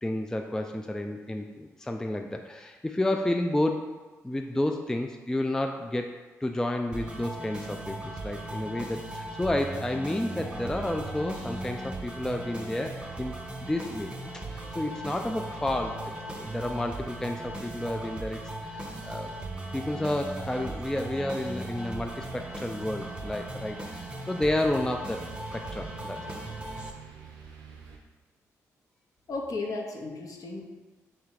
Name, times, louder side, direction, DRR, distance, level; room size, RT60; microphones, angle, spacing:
voice 1, 0.0-3.9 4.2-6.1 6.4-14.1 14.5-19.3 19.7-25.2 25.5-26.2, left 1 dB, 10° left, 4 dB, 0.3 m, -31 dB
sound 1, 6.9-26.9, right 1 dB, 10° right, 0.8 m, -38 dB
sound 2, 10.5-28.0, right 6 dB, 80° right, 0.6 m, -50 dB
voice 2, 29.3-30.6, left 3 dB, 50° left, 0 dB, 0.9 m, -34 dB
3.5 x 3.2 x 4.6 m, 1.3 s
hypercardioid pair, 40°, 8 cm